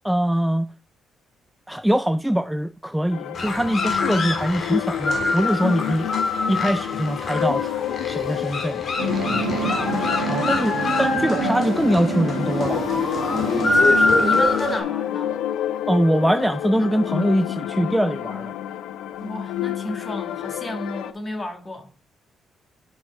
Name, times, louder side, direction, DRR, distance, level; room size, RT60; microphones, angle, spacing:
voice 1, 0.0-0.7 1.7-6.1 6.5-7.7 8.1-8.8 10.3-12.8 15.9-18.5, equal, 5° right, 0.3 m, -22 dB
sound 1, 3.1-21.1, left 11 dB, 85° left, 0.4 m, -29 dB
sound 2, 3.3-14.8, left 3 dB, 45° left, 2.1 m, -24 dB
sound 3, 9.0-14.4, right 7 dB, 85° right, 1.2 m, -28 dB
voice 2, 9.2-10.2 13.4-15.3 19.2-21.9, left 1 dB, 25° left, 1.7 m, -33 dB
6.3 x 5.4 x 4.4 m
cardioid pair, 90°, 0 cm